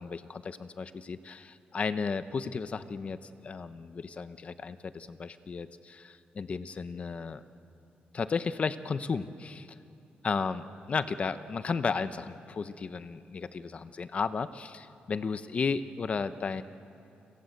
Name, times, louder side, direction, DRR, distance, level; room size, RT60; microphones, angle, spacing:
voice 1, 0.0-3.2 3.4-7.4 8.1-9.7 10.2-16.6, left 5 dB, 35° left, 12 dB, 0.9 m, -34 dB
30.0 x 25.5 x 7.9 m, 2.8 s
wide cardioid pair, 145°, 4 cm